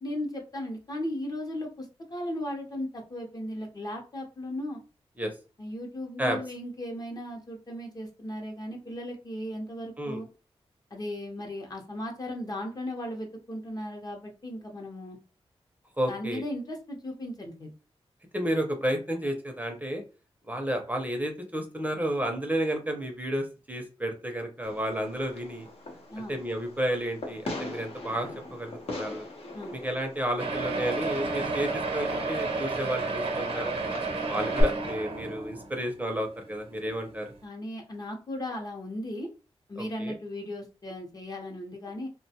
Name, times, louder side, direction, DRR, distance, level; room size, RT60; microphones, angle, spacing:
voice 1, 0.0-4.8 5.6-10.3 10.9-15.2 16.1-17.7 26.1-26.4 29.5-29.7 37.4-39.3 39.7-42.1, left 1 dB, 35° left, 1 dB, 0.8 m, -36 dB
voice 2, 16.0-16.4 18.3-20.0 20.5-25.7 26.2-29.3 29.7-33.8 34.3-37.3 40.0-40.2, equal, 15° right, 3 dB, 0.6 m, -31 dB
Fireworks, 24.6-34.6, left 1 dB, 65° left, 0.8 m, -40 dB
sound 1, 30.4-35.8 36.5-36.6 36.9-37.0 37.3-37.4, right 3 dB, 65° right, 0.7 m, -31 dB
2.4 x 2.2 x 2.8 m, 0.33 s
wide cardioid pair, 80°, 11 cm